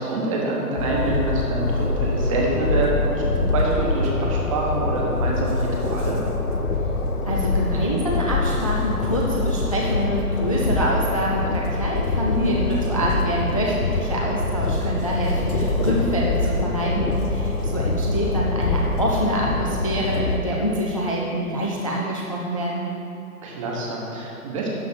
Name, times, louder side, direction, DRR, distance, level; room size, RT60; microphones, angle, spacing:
voice 1, 0.0-6.2 23.4-24.7, right 2 dB, 20° right, -3 dB, 1.2 m, -26 dB
Train, 0.8-20.4, left 2 dB, 75° left, 1.0 m, -24 dB
voice 2, 7.3-22.9, equal, 25° left, -3 dB, 0.4 m, -26 dB
11.5 x 4.0 x 6.2 m, 2.8 s
figure-of-eight pair, 135°, 45 cm